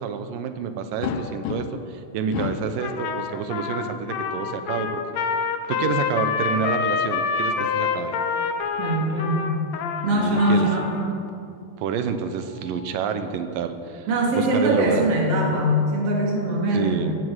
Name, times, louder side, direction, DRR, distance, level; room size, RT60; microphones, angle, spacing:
voice 1, 0.0-5.0 5.7-8.2 10.1-10.7 11.8-14.1 14.4-15.1 16.7-17.2, right 6 dB, 85° right, 9 dB, 2.7 m, -28 dB
sound 1, 1.0-2.0 2.3-2.8 4.0-4.8 7.4-8.5 9.9-10.1 10.4-10.5 12.1-13.3, left 7 dB, 90° left, 2.5 m, -35 dB
Trumpet, 2.8-11.1, left 6 dB, 65° left, 1.9 m, -27 dB
voice 2, 8.8-9.5 10.0-10.9 14.1-17.1, right 1 dB, 45° right, -2 dB, 3.8 m, -22 dB
16.0 x 14.0 x 6.4 m, 2.4 s
omnidirectional pair, 3.8 m